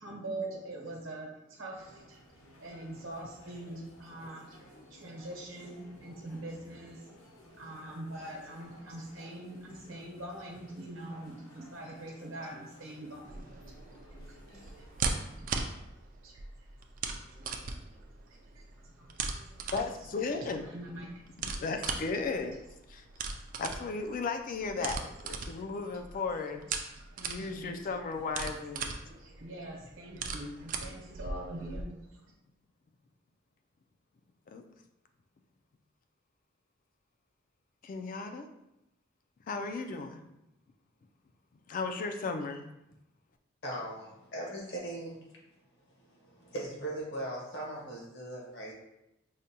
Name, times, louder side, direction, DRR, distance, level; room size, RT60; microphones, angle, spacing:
voice 1, 0.0-2.2 2.6-14.0 14.2-15.5 16.2-16.7 17.4-17.5 17.9-19.5 20.5-21.3 26.9-27.8 29.1-32.2, right 1 dB, 75° right, -1 dB, 0.9 m, -44 dB
sound 1, 1.7-15.4, left 1 dB, 90° left, 0.7 m, -57 dB
sound 2, 13.2-31.8, right 4 dB, 40° right, 0.3 m, -39 dB
voice 2, 19.7-20.6 21.4-22.6 22.9-23.1 23.6-26.7 27.3-29.0 34.5-34.6 37.8-38.5 39.5-40.2 41.7-42.6, left 4 dB, 40° left, 6 dB, 0.3 m, -35 dB
voice 3, 43.6-45.2 46.0-48.7, right 1 dB, 60° left, -3 dB, 1.1 m, -39 dB
4.9 x 2.2 x 2.8 m, 0.88 s
head